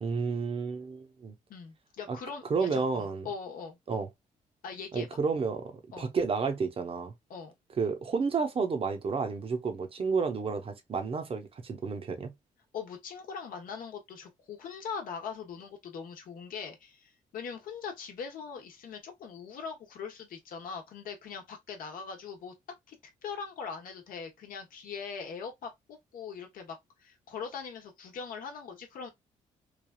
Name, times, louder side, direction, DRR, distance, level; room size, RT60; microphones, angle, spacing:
voice 1, 0.0-1.3 2.1-2.2 2.5-3.3 3.9-4.1 4.9-7.1 7.8-12.3, right 5 dB, 40° right, 0.8 m, -31 dB
voice 2, 1.5-3.8 4.6-5.1 5.9-6.1 7.3-7.5 12.7-22.5 22.9-23.0 23.2-29.1, left 6 dB, 70° left, 0.9 m, -41 dB
3.3 x 2.3 x 2.3 m
cardioid pair, 85°, 15 cm